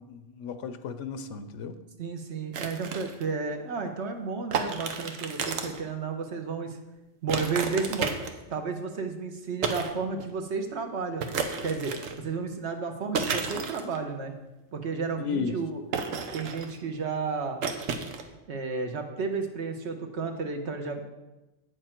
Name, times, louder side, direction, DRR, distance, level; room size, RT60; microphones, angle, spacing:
voice 1, 0.0-1.7 15.2-15.6, left 5 dB, 75° left, 10 dB, 0.9 m, -34 dB
voice 2, 2.0-6.8 7.2-8.2 8.5-14.3 14.7-15.8 16.3-17.6 18.5-21.0, right 4 dB, 65° right, 5 dB, 1.1 m, -32 dB
sound 1, 2.5-3.3 4.5-5.8 7.3-8.5 9.6-9.9 10.2-10.3 11.2-12.2 13.1-14.0 15.9-16.8 17.6-18.2, right 5 dB, 85° right, 1.2 m, -32 dB
8.7 x 6.6 x 4.4 m, 1.0 s
omnidirectional pair, 1.3 m